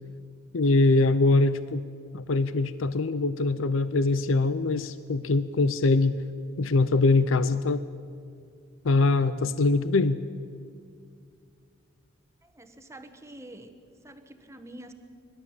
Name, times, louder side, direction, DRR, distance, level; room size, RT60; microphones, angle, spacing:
voice 1, 0.5-1.8 2.1-6.2 6.6-7.8 8.8-10.2, left 3 dB, 75° left, 14 dB, 0.6 m, -23 dB
voice 2, 12.4-13.7 14.0-14.9, right 1 dB, 15° right, 7 dB, 1.3 m, -46 dB
24.5 x 12.0 x 8.8 m, 2.3 s
head